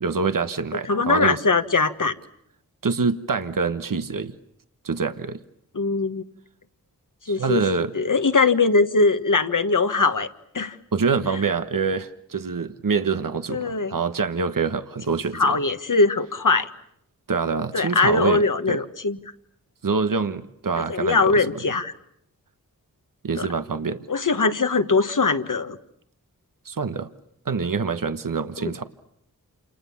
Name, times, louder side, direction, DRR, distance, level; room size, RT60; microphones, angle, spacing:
voice 1, 0.0-1.4 2.8-4.3 4.8-5.4 7.3-7.9 10.9-15.6 17.3-18.8 19.8-21.4 23.2-24.0 26.6-27.1 27.4-28.9, right 5 dB, 65° right, 10 dB, 1.3 m, -25 dB
voice 2, 0.9-2.1 5.7-6.2 7.3-7.6 7.9-10.3 10.5-10.8 13.5-13.9 15.1-16.7 17.7-19.2 20.9-21.9 23.4-23.5 24.1-25.8 28.6-28.7, left 3 dB, 60° left, 9 dB, 1.7 m, -21 dB
28.5 x 28.0 x 7.3 m, 0.74 s
wide cardioid pair, 65°, 36 cm